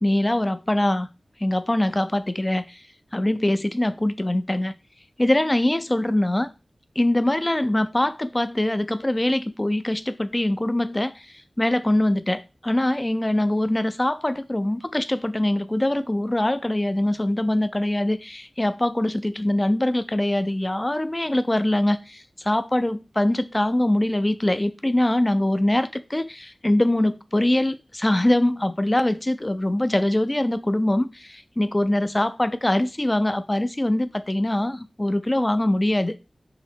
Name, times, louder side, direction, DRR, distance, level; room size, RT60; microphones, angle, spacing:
voice 1, 0.0-1.1 1.4-2.8 3.1-4.7 5.2-6.5 7.0-36.2, left 1 dB, 25° left, 0.5 m, -23 dB
5.7 x 2.0 x 4.3 m
wide cardioid pair, 50°, 0 cm